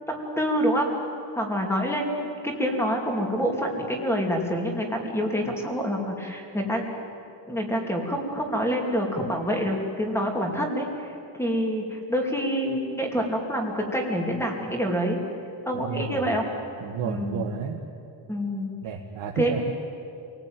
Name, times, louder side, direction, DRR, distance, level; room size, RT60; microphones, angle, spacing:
voice 1, 0.1-0.9 1.3-6.9 7.5-11.1 11.4-15.2 15.6-16.4 17.0-17.4 18.3-18.7 19.3-19.6, equal, 5° left, 1 dB, 3.0 m, -27 dB
voice 2, 15.7-16.2 16.8-17.8 18.8-19.7, right 6 dB, 65° right, -1 dB, 1.8 m, -31 dB
27.5 x 19.0 x 9.1 m, 2.6 s
cardioid pair, 175°, 47 cm